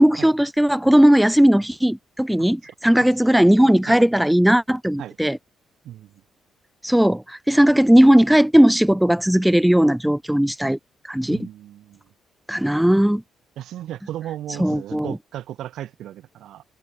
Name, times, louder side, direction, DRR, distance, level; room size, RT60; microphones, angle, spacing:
voice 1, 0.0-5.4 6.8-10.8 11.1-11.4 12.5-13.2 14.6-15.2, equal, 5° right, 0.5 m, -17 dB
voice 2, 5.8-6.2 11.3-12.0 13.6-16.6, right 12 dB, 80° right, 1.2 m, -35 dB
cardioid pair, 90°, 0 cm